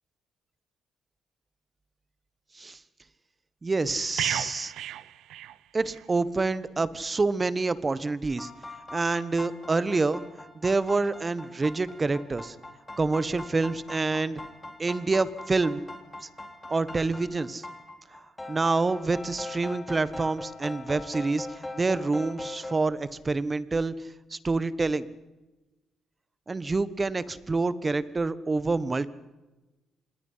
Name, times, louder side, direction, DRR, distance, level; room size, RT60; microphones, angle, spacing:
voice 1, 3.6-4.7 5.7-8.5 8.9-10.2 10.5-12.5 13.0-14.4 14.8-15.8 16.2-16.3 16.7-17.6 18.1-18.2 18.5-23.9 24.3-25.1 26.5-29.1, right 3 dB, 25° right, 16 dB, 1.4 m, -27 dB
sound 1, 4.2-6.1 6.4-6.6, right 12 dB, 85° right, 0.9 m, -34 dB
sound 2, 8.3-22.7, left 2 dB, 15° left, 3.7 m, -41 dB
26.5 x 20.5 x 5.8 m, 1.1 s
cardioid pair, 90°, 0 cm